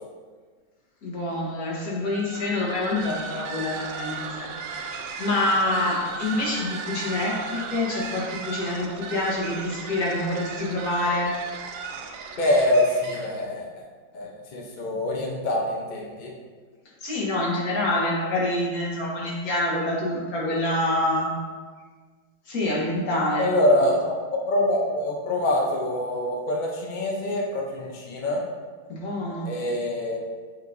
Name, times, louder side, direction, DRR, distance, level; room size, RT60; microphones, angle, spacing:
voice 1, 1.0-4.9 5.2-11.3 17.0-21.3 22.5-23.5 28.9-29.5, left 1 dB, 50° left, -3 dB, 1.6 m, -26 dB
sound 1, 2.0-13.4, right 4 dB, 75° right, 1.1 m, -36 dB
voice 2, 12.4-13.8 14.1-16.3 23.4-24.1 24.5-28.4 29.4-30.2, left 1 dB, 75° left, -2 dB, 0.4 m, -24 dB
7.7 x 4.7 x 2.6 m, 1.5 s
omnidirectional pair, 2.1 m